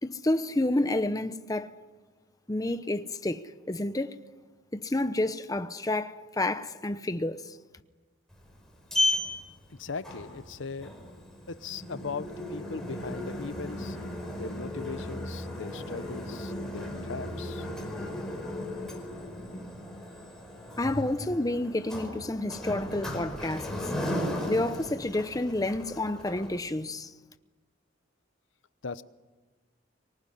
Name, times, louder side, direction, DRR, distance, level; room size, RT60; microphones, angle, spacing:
voice 1, 0.0-1.7 2.5-4.2 4.7-7.6 20.8-23.7 24.5-27.1, left 2 dB, 20° left, 0.8 m, -29 dB
Sliding door, 8.3-26.6, left 1 dB, 5° left, 5.0 m, -35 dB
voice 2, 9.7-10.9 11.5-14.0 14.4-17.7 28.8-29.0, left 4 dB, 70° left, 0.8 m, -39 dB
24.5 x 19.5 x 10.0 m
head